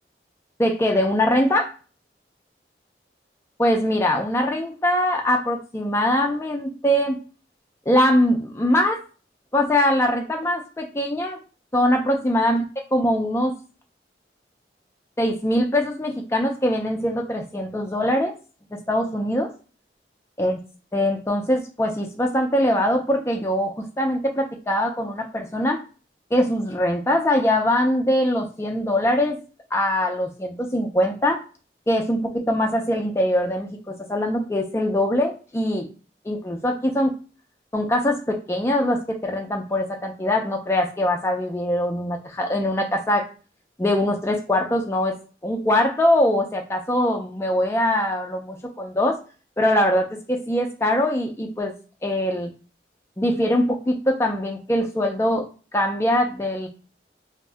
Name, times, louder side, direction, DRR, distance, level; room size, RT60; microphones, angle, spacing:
voice 1, 0.6-1.7 3.6-7.2 7.9-9.0 9.5-11.4 11.7-12.6 12.9-13.5 15.2-18.3 18.7-19.5 20.4-20.6 20.9-25.8 26.3-29.4 29.7-31.4 31.9-35.9 36.3-37.1 37.7-43.3 43.8-45.1 45.4-49.2 49.6-51.7 52.0-52.5 53.2-56.7, left 1 dB, 15° left, 2 dB, 0.3 m, -22 dB
2.6 x 2.0 x 3.3 m, 0.36 s
head